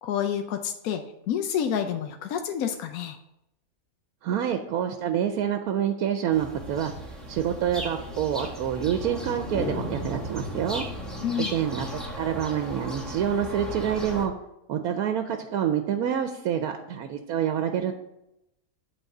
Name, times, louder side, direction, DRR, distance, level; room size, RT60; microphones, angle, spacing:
voice 1, 0.0-3.2 11.2-11.5, left 8 dB, 85° left, 6 dB, 1.1 m, -29 dB
voice 2, 4.2-6.9 7.3-10.8 11.5-11.9 12.2-14.3 14.7-17.9, right 9 dB, 90° right, 6 dB, 1.1 m, -27 dB
sound 1, 6.3-14.3, equal, ahead, 1.2 m, -35 dB
8.1 x 3.9 x 6.6 m, 0.86 s
omnidirectional pair, 1.5 m